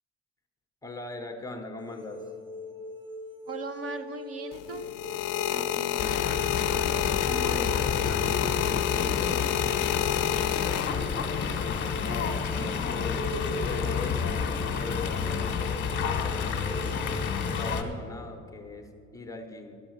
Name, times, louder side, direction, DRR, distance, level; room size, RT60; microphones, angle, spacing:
voice 1, 0.8-2.3 8.9-10.8 11.6-17.2 17.6-19.8, left 3 dB, 10° left, 4 dB, 0.8 m, -41 dB
sound 1, 1.8-17.7, left 2 dB, 75° right, 1.7 m, -41 dB
voice 2, 3.5-4.9 5.5-6.0 6.9-8.2, right 4 dB, 50° right, 8 dB, 0.7 m, -40 dB
sound 2, 4.5-11.4 12.2-12.5, left 12 dB, 55° left, 0.5 m, -29 dB
Fowl, 6.0-17.8, left 6 dB, 40° left, 1.0 m, -30 dB
11.5 x 6.1 x 7.7 m, 2.4 s
cardioid pair, 160°, 31 cm